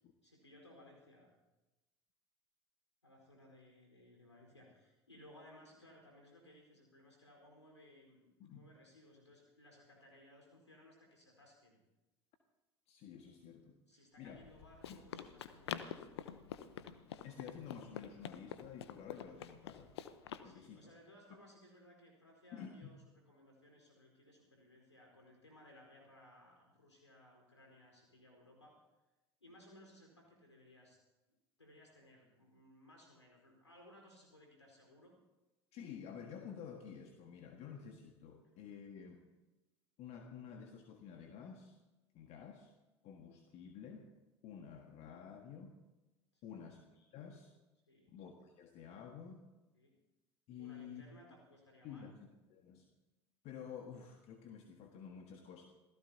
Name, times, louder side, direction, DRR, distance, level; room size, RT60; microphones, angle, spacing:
voice 1, 0.2-1.3 3.0-11.8 13.9-16.1 20.4-23.0 23.3-28.8 29.4-31.0 31.6-35.2 46.3-46.6 47.9-48.1 49.7-50.0 50.6-52.1, left 1 dB, 85° left, 0 dB, 4.4 m, -61 dB
voice 2, 12.9-13.8 14.2-14.4 14.9-15.0 17.2-19.9 20.4-20.9 22.5-22.9 35.7-39.2 40.0-41.8 42.1-42.7 43.0-44.1 44.4-45.7 46.4-47.5 48.1-49.4 50.5-51.0 51.8-52.2 52.5-52.9 53.4-55.7, left 7 dB, 50° left, 4 dB, 1.7 m, -51 dB
Run, 14.3-20.5, left 9 dB, 70° left, 0.9 m, -47 dB
27.5 x 17.0 x 2.8 m, 1.1 s
figure-of-eight pair, 65°, 14 cm